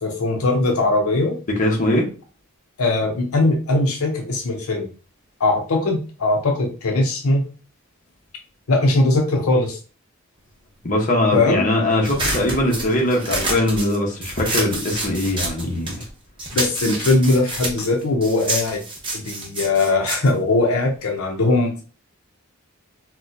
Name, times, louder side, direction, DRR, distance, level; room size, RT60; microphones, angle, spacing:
voice 1, 0.0-1.3 2.8-4.9 5.4-7.4 8.7-9.8 11.3-11.7 16.5-18.8 19.1-21.8, left 2 dB, 70° left, 0.6 m, -20 dB
voice 2, 1.5-2.1 10.8-16.0, left 1 dB, 35° left, 0.8 m, -21 dB
sound 1, 12.0-16.1 16.4-21.2, right 2 dB, 25° right, 0.8 m, -28 dB
4.1 x 2.2 x 2.5 m
head